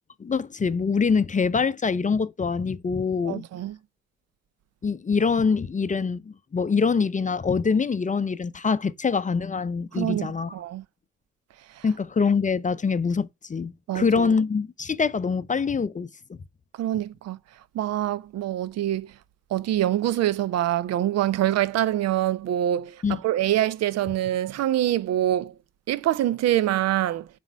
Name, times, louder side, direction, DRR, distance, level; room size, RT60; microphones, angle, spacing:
voice 1, 0.2-3.4 4.8-10.5 11.8-16.4 23.0-23.2, left 5 dB, 25° left, 0.6 m, -24 dB
voice 2, 3.2-3.8 9.9-10.8 11.8-11.9 13.9-14.3 16.8-17.4 17.7-19.1 19.5-25.5 25.9-27.3, right 12 dB, 55° right, 0.6 m, -25 dB
7.2 x 3.4 x 4.5 m
hypercardioid pair, 45°, 30 cm